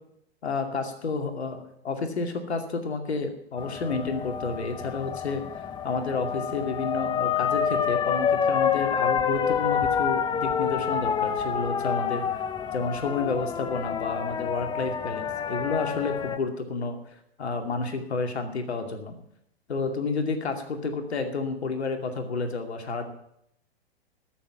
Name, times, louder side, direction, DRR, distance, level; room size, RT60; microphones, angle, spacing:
voice 1, 0.4-5.4 5.8-12.2 12.7-17.0 17.4-19.2 19.7-23.1, left 4 dB, 80° left, 6 dB, 2.5 m, -30 dB
sound 1, 3.6-16.4, left 7 dB, 15° left, 0.7 m, -28 dB
14.0 x 7.0 x 9.3 m, 0.74 s
hypercardioid pair, 120°, 32 cm